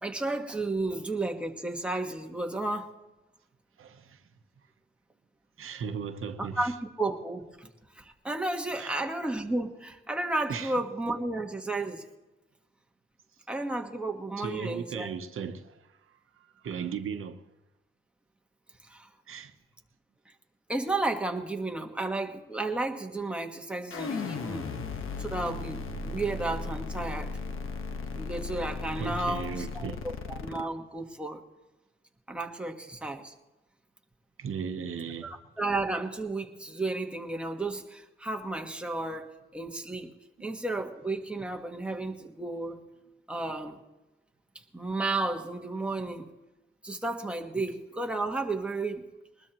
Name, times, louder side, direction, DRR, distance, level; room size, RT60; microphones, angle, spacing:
voice 1, 0.0-2.9 6.4-7.7 7.9-12.1 13.5-15.1 18.9-19.1 20.7-24.7 25.2-27.4 28.1-31.4 32.3-33.3 35.2-40.1 40.4-42.8 43.3-43.8 44.7-46.3 46.8-49.1, right 2 dB, 5° right, 1.4 m, -33 dB
voice 2, 3.8-4.2 5.6-6.7 8.7-9.0 10.5-10.7 14.4-15.9 16.6-17.4 19.3-19.5 29.0-30.0 34.4-35.3 40.4-40.5, right 6 dB, 80° right, 1.0 m, -36 dB
sound 1, 23.9-30.6, left 4 dB, 75° left, 1.4 m, -36 dB
21.5 x 20.0 x 3.0 m
wide cardioid pair, 140°, 21 cm